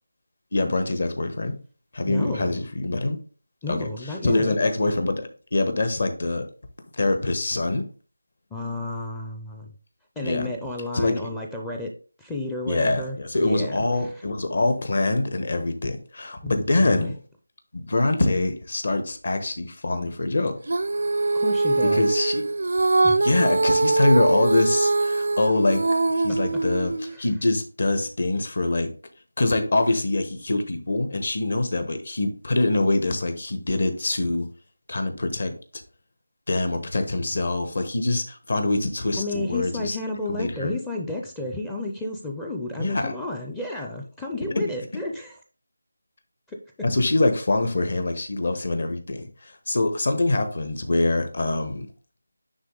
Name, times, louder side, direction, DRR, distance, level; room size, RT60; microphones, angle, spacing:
voice 1, 0.5-1.5 1.9-3.2 3.7-6.5 6.9-7.8 10.2-10.5 10.9-11.3 12.7-17.1 17.7-20.6 21.8-22.4 23.2-25.8 26.1-28.9 29.4-34.5 34.9-35.5 36.5-40.0 40.4-40.8 42.8-43.1 44.5-44.7 46.8-51.9, left 2 dB, 55° left, 7 dB, 1.2 m, -24 dB
voice 2, 2.1-2.6 3.6-4.6 8.5-9.7 10.2-11.9 12.2-14.1 16.4-17.1 21.3-22.1 23.0-23.4 27.1-27.3 39.2-45.4 46.5-46.6, left 2 dB, 5° left, 1 dB, 0.4 m, -32 dB
Female singing, 20.7-27.2, right 2 dB, 60° right, 0.4 m, -22 dB
9.5 x 3.2 x 3.8 m, 0.38 s
figure-of-eight pair, 170°, 0 cm